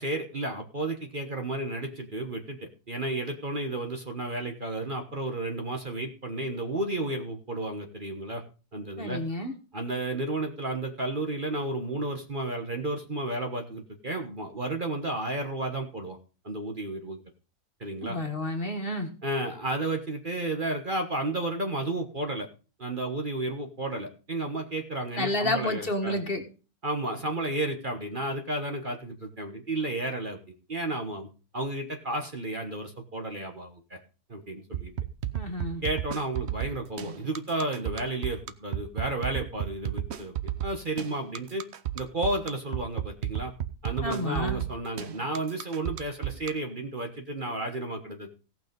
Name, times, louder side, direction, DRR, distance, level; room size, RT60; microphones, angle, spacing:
voice 1, 0.0-2.6 2.9-8.4 8.7-9.2 9.7-16.2 16.4-17.2 17.8-18.2 19.2-22.5 22.8-26.2 26.8-30.4 30.7-31.3 31.5-34.0 34.3-34.9 35.8-40.4 40.6-41.6 41.9-43.5 43.8-48.3, right 2 dB, 35° right, 4 dB, 1.4 m, -32 dB
voice 2, 9.0-9.5 18.0-19.1 25.2-26.4 35.3-35.8 44.0-44.6, left 1 dB, 35° left, 4 dB, 1.8 m, -30 dB
sound 1, 34.7-46.5, right 11 dB, 55° right, 0.9 m, -32 dB
17.0 x 6.1 x 5.3 m, 0.35 s
omnidirectional pair, 1.6 m